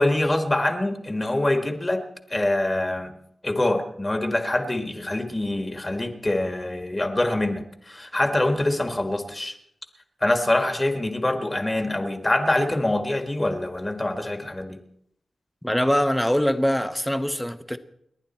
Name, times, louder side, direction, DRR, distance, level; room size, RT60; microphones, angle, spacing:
voice 1, 0.0-2.0 2.3-3.1 3.4-9.6 10.2-14.8, left 1 dB, 20° left, 1.6 m, -24 dB
voice 2, 15.6-17.8, equal, 5° left, 0.9 m, -23 dB
30.0 x 11.0 x 4.4 m
wide cardioid pair, 125°, 0 cm